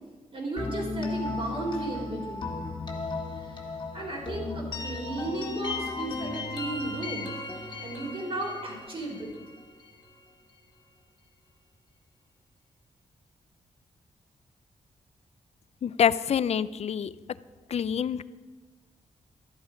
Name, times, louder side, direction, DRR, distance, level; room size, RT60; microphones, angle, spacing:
voice 1, 0.3-2.5 3.4-3.7 3.9-7.3 7.8-9.3, right 2 dB, 40° right, -1 dB, 3.9 m, -35 dB
sound 1, 0.6-10.3, left 3 dB, 35° left, 1.8 m, -36 dB
voice 2, 15.8-17.1 17.7-18.2, left 8 dB, 55° left, 17 dB, 0.4 m, -26 dB
13.0 x 11.0 x 5.1 m, 1.3 s
wide cardioid pair, 140°, 13 cm